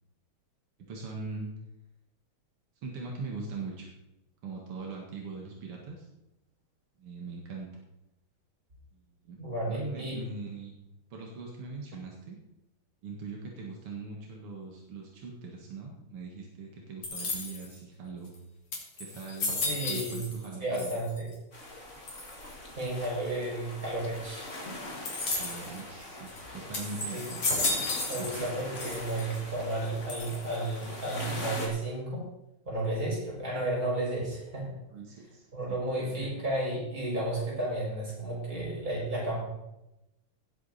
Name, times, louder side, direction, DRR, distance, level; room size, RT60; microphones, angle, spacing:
voice 1, 0.9-1.5 2.8-3.9 4.4-6.1 7.0-7.8 8.9-9.4 9.7-10.8 11.1-12.4 13.0-18.3 19.0-21.0 25.2-27.6 28.2-28.5 34.9-35.8, right 4 dB, 90° right, 0 dB, 2.7 m, -41 dB
voice 2, 9.4-10.2 19.6-20.3 20.6-21.3 22.8-24.5 27.1-27.2 28.1-32.2 32.6-34.7 35.5-39.5, right 1 dB, 40° right, -4 dB, 6.2 m, -32 dB
sound 1, 17.0-17.8 18.3-18.4 18.7-20.5 20.7-21.3 22.1-22.5 25.1-25.7 26.3-26.4 26.7-28.5 28.8-29.4 30.1-30.7, left 2 dB, 90° left, 4.0 m, -33 dB
sound 2, 21.5-31.7, left 1 dB, 35° left, 2.7 m, -42 dB
18.0 x 8.2 x 4.2 m, 0.91 s
omnidirectional pair, 2.4 m